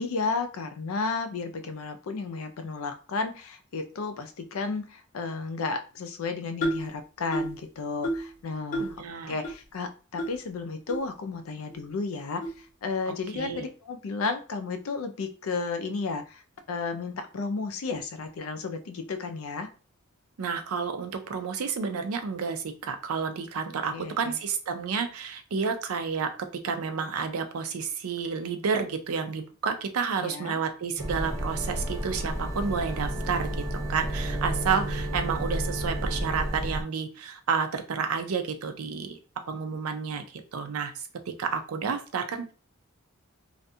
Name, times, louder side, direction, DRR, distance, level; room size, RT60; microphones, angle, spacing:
voice 1, 0.0-16.4 16.7-19.7 23.9-24.4 30.2-30.6, left 4 dB, 70° left, 8 dB, 0.4 m, -33 dB
sound 1, 6.6-6.9 7.3-7.6 8.0-8.3 8.7-9.0 9.4-9.5 10.2-10.3 10.9-11.0 11.7-11.8 12.4-12.6, equal, 40° left, 0.7 m, -30 dB
voice 2, 8.8-9.3 13.1-13.7 20.4-39.2 39.5-42.5, right 5 dB, 80° right, 7 dB, 0.5 m, -30 dB
sound 2, 31.0-36.8, right 1 dB, 15° right, 0.4 m, -31 dB
2.4 x 2.2 x 2.7 m, 0.35 s
head